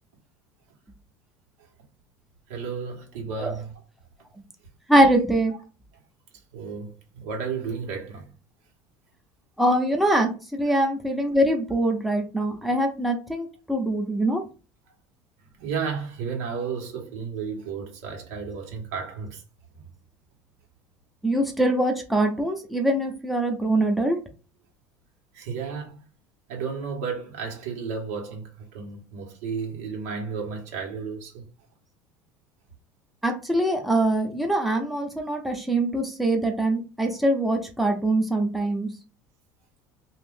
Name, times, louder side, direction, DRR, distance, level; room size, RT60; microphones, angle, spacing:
voice 1, 2.5-3.7 6.5-8.3 10.7-10.8 15.6-19.4 19.7-19.8 25.3-26.0 26.5-31.5, right 5 dB, 90° right, 1.3 m, -33 dB
voice 2, 4.9-5.5 9.6-14.4 21.2-24.2 33.2-38.9, right 1 dB, ahead, 0.7 m, -23 dB
2.6 x 2.5 x 3.6 m
supercardioid pair, 110°, 7 cm